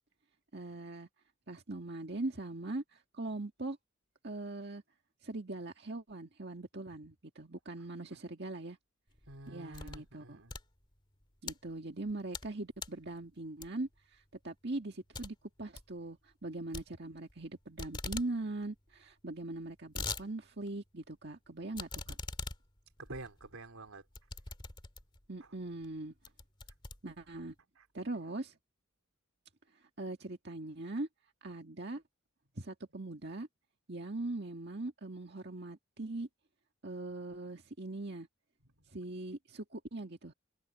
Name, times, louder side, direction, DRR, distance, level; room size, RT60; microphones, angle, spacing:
voice 1, 0.5-1.1 1.5-3.8 4.2-4.8 5.2-8.8 9.5-10.4 11.4-22.2 25.3-26.1 27.0-27.5 27.9-28.5 30.0-31.1 31.4-32.0 32.6-33.5 33.9-36.3 36.8-38.3 38.9-40.3, right 2 dB, 50° right, 1.8 m, -41 dB
sound 1, 9.1-10.1 10.4-11.5 12.0-12.5 12.8-13.1 13.6-14.0 14.4-14.5 14.8-14.9 15.1-15.3 15.6-15.9 16.7-17.5 17.8-18.3 18.6-18.7 18.9-19.0 19.5-20.2 20.7-20.8 21.7-25.2 25.8-25.9 26.2-27.5, left 3 dB, 20° left, 2.0 m, -42 dB
voice 2, 9.3-10.5 23.0-24.0 27.8-27.9, right 2 dB, 85° right, 4.1 m, -48 dB
head